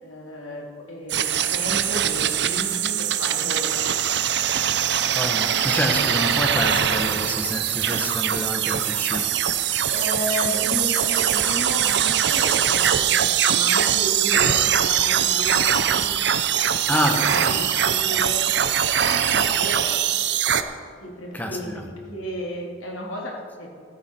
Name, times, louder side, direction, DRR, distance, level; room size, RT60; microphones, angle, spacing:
voice 1, 0.0-3.9 9.9-16.1 17.0-18.5 19.1-20.2 21.0-21.7 22.1-23.7, equal, 80° left, -1 dB, 2.8 m, -33 dB
sound 1, 1.1-20.6, right 9 dB, 55° right, 0.7 m, -22 dB
voice 2, 5.1-9.7 11.4-11.6 16.9-17.4 21.3-21.9, equal, 10° left, 3 dB, 1.2 m, -28 dB
14.0 x 13.5 x 4.5 m, 2.1 s
head